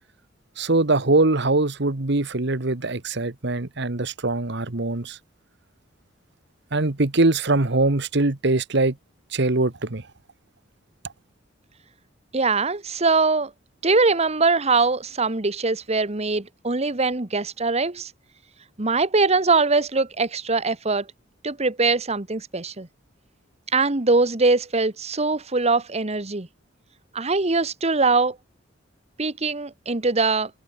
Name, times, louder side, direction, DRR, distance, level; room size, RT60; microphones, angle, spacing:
voice 1, 0.6-5.2 6.7-9.0 9.3-10.0, right 2 dB, 65° right, 1.5 m, -22 dB
voice 2, 12.3-13.5 13.8-18.1 18.8-21.1 21.4-22.9 23.7-26.5 27.1-28.4 29.2-30.5, right 3 dB, 35° right, 1.4 m, -22 dB
head